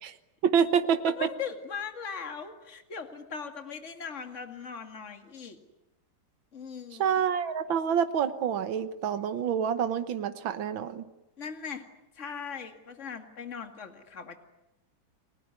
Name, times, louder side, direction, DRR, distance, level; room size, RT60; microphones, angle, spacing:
voice 1, 0.4-1.3 7.0-11.1, right 7 dB, 75° right, 10 dB, 2.0 m, -27 dB
voice 2, 1.1-5.6 6.5-7.0 11.4-11.8 12.1-14.4, left 6 dB, 35° left, 6 dB, 2.4 m, -39 dB
29.5 x 20.0 x 9.8 m, 0.93 s
omnidirectional pair, 2.2 m